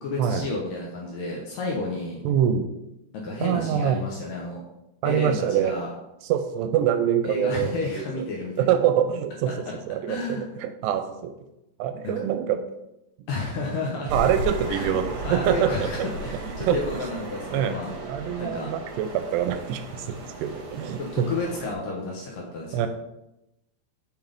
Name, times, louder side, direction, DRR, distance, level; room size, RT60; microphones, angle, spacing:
voice 1, 0.0-2.2 3.1-4.6 5.0-5.9 7.2-8.7 9.5-9.7 10.1-10.5 12.0-12.2 13.3-14.1 14.7-15.0 15.2-17.9 18.4-18.7 21.0-22.9, left 3 dB, 70° left, -2 dB, 2.2 m, -31 dB
voice 2, 2.2-2.7 3.4-4.0 5.0-5.8 6.2-8.1 8.6-9.5 9.9-11.3 11.8-12.6 14.1-16.1 16.7-16.8 17.5-17.7 18.1-21.3 22.7-22.9, right 9 dB, 85° right, 8 dB, 2.5 m, -25 dB
sound 1, 14.1-21.7, right 2 dB, 65° right, 1.8 m, -35 dB
6.9 x 5.8 x 3.5 m, 0.90 s
omnidirectional pair, 4.9 m